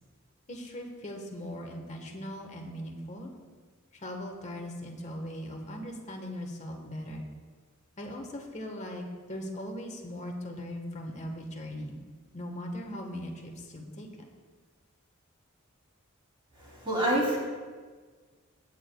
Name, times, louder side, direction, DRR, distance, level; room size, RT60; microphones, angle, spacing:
voice 1, 0.5-3.3 3.9-7.2 8.0-9.0 9.3-12.0 12.3-14.1, equal, 35° left, 2 dB, 1.3 m, -39 dB
voice 2, 16.6-17.4, right 1 dB, 25° right, -4 dB, 2.9 m, -27 dB
17.5 x 8.6 x 2.3 m, 1.5 s
head